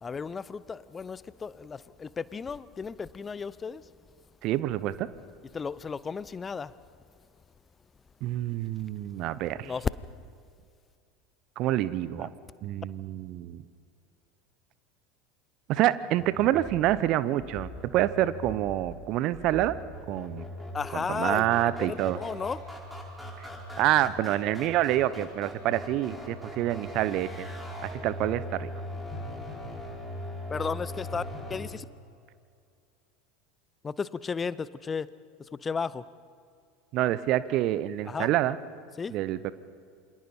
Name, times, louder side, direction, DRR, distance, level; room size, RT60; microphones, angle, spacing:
voice 1, 0.0-3.8 5.5-6.7 9.6-9.9 12.2-12.3 20.7-21.5 21.8-22.6 30.5-31.2 31.5-31.9 33.8-35.1 35.6-36.0 38.1-38.3 39.0-39.1, left 5 dB, 20° left, 0.7 m, -34 dB
voice 2, 4.4-5.1 8.2-9.7 11.6-12.3 12.6-13.6 15.7-19.7 20.1-20.4 20.9-22.2 23.4-23.5 23.8-27.5 27.8-28.7 36.9-38.6 39.1-39.5, right 14 dB, 50° right, 0.8 m, -27 dB
sound 1, 16.2-31.6, left 1 dB, ahead, 4.9 m, -40 dB
28.0 x 25.5 x 4.4 m
figure-of-eight pair, 75°, 0 cm